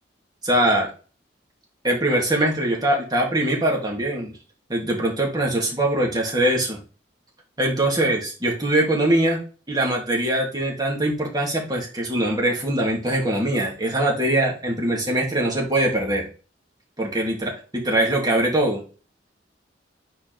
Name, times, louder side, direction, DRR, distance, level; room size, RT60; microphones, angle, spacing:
voice 1, 0.4-0.9 1.8-4.3 4.7-6.8 7.6-9.4 9.7-16.3 17.0-18.8, right 1 dB, 20° right, -1 dB, 2.5 m, -22 dB
9.4 x 4.4 x 3.5 m, 0.35 s
head